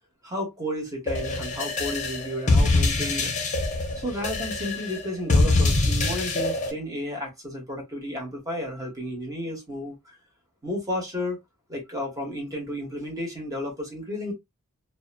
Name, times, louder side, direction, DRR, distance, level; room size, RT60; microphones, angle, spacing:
voice 1, 0.2-3.3 3.9-9.9 10.6-11.4 11.7-14.3, left 1 dB, 15° right, 1.0 m, -32 dB
sound 1, 1.1-6.7, left 2 dB, 35° left, 0.7 m, -24 dB
2.8 x 2.1 x 2.4 m
head